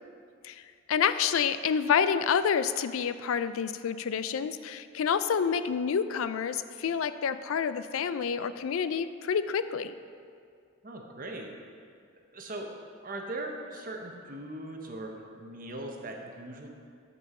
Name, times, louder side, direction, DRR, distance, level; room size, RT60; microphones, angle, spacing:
voice 1, 0.9-9.9, left 7 dB, 80° left, 12 dB, 0.4 m, -28 dB
voice 2, 10.8-11.5 12.3-12.7 13.0-16.7, right 1 dB, 40° right, 1 dB, 0.9 m, -39 dB
13.0 x 5.4 x 4.3 m, 2.3 s
head